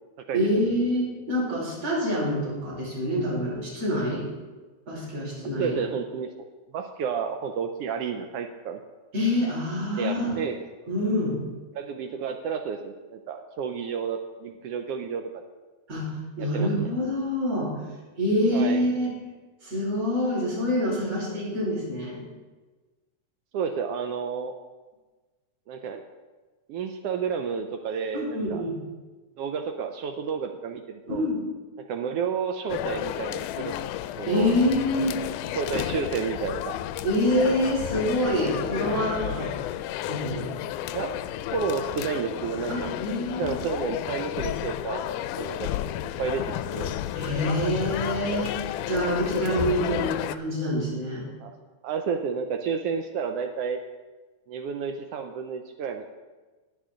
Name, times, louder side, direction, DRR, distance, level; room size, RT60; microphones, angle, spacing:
voice 1, 0.3-4.3 4.9-5.8 9.1-10.3 10.9-11.4 15.9-16.1 16.4-17.7 18.2-19.1 19.6-22.2 28.1-28.7 31.1-31.4 34.3-35.2 37.0-39.5 40.1-40.5 42.7-43.6 47.2-48.6 48.9-51.3, equal, 50° right, -6 dB, 5.9 m, -26 dB
voice 2, 5.6-6.4 6.7-8.8 9.9-10.6 11.7-15.4 16.4-16.9 18.5-18.8 23.5-24.5 25.7-26.0 26.7-28.6 29.4-31.3 31.8-33.9 34.2-34.5 35.6-36.7 40.9-41.2 41.5-42.9 43.4-45.7 46.0-47.0 51.4-51.5 51.8-53.8 54.5-56.1, right 6 dB, 85° right, 5 dB, 1.3 m, -31 dB
sound 1, 32.7-50.4, left 12 dB, 90° left, 2.1 m, -32 dB
21.0 x 7.6 x 3.8 m, 1.3 s
omnidirectional pair, 3.5 m